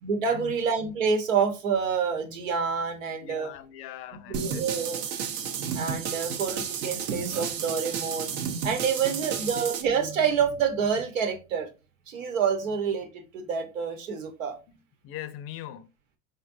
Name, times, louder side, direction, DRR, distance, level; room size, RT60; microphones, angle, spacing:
voice 1, 0.0-3.5 4.1-5.0 5.7-8.3 8.6-11.7 12.1-13.1 13.3-14.5, right 6 dB, 80° right, 1.3 m, -27 dB
voice 2, 3.2-4.6 6.0-6.3 9.4-9.5 15.0-15.9, left 12 dB, 35° left, 0.5 m, -41 dB
sound 1, 4.3-9.8, right 7 dB, 40° right, 0.8 m, -32 dB
4.2 x 3.7 x 2.7 m
hypercardioid pair, 115°, 39 cm